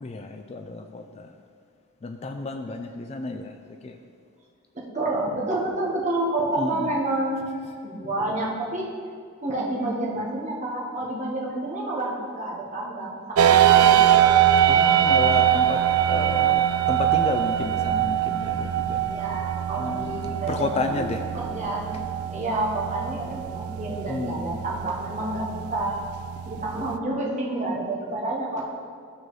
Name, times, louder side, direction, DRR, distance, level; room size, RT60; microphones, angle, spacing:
voice 1, 0.0-1.3 2.0-3.6 3.8-4.0 6.6-7.0 14.7-19.4 19.8-21.2 24.1-24.6, left 3 dB, 30° left, 6 dB, 0.3 m, -31 dB
voice 2, 4.7-8.9 9.4-14.1 19.0-22.0 22.3-26.0 26.4-28.6, right 2 dB, 35° right, -4 dB, 1.3 m, -29 dB
sound 1, 13.4-27.0, right 10 dB, 85° right, 0.3 m, -22 dB
13.5 x 4.6 x 3.2 m, 2.1 s
head